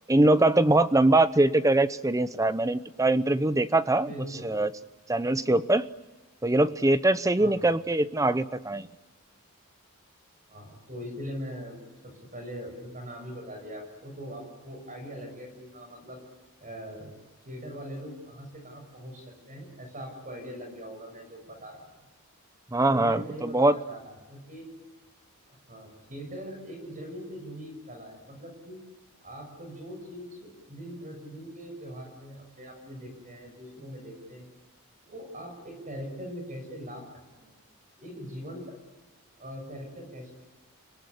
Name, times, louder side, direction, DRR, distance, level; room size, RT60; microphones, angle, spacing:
voice 1, 0.1-4.1 4.4-4.7 5.1-5.8 6.4-8.9 22.7-23.8, right 2 dB, 15° right, 13 dB, 0.8 m, -22 dB
voice 2, 4.1-4.6 7.4-7.7 10.5-11.8 12.0-16.2 16.6-17.1 17.5-21.9 22.9-24.7 25.5-28.8 29.2-34.5 35.1-37.1 37.4-37.5 38.0-38.7 39.4-40.3, equal, 35° right, 3 dB, 6.9 m, -41 dB
30.0 x 19.0 x 9.9 m, 1.2 s
head